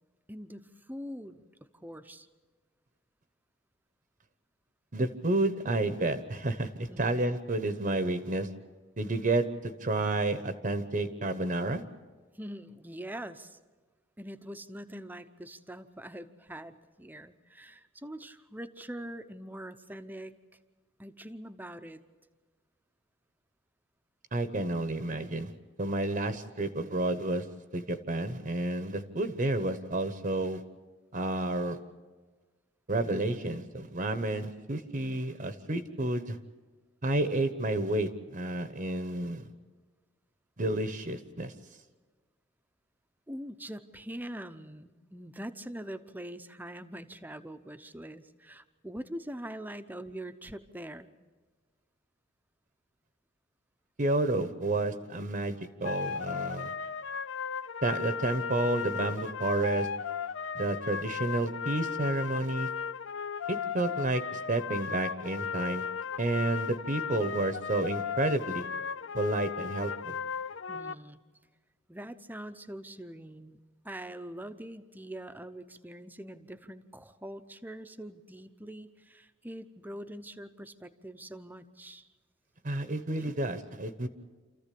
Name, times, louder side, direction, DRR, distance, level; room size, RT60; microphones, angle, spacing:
voice 1, 0.3-1.5 1.8-2.3 6.9-7.1 12.3-13.6 14.2-20.3 21.0-22.0 43.3-51.1 70.7-71.2 71.9-73.6 73.8-82.1 83.2-83.4, right 1 dB, 10° right, 10 dB, 0.8 m, -43 dB
voice 2, 4.9-8.5 9.0-11.8 24.3-25.5 25.8-27.4 27.7-30.6 31.1-31.8 32.9-36.4 37.0-39.5 40.6-41.5 54.0-56.7 57.8-59.9 60.5-62.7 63.5-65.9 66.2-68.6 69.1-70.2 82.6-84.1, right 2 dB, 45° right, 10 dB, 1.0 m, -30 dB
sound 1, 55.8-70.9, left 6 dB, 75° left, 0.6 m, -36 dB
28.0 x 14.5 x 8.5 m, 1.4 s
head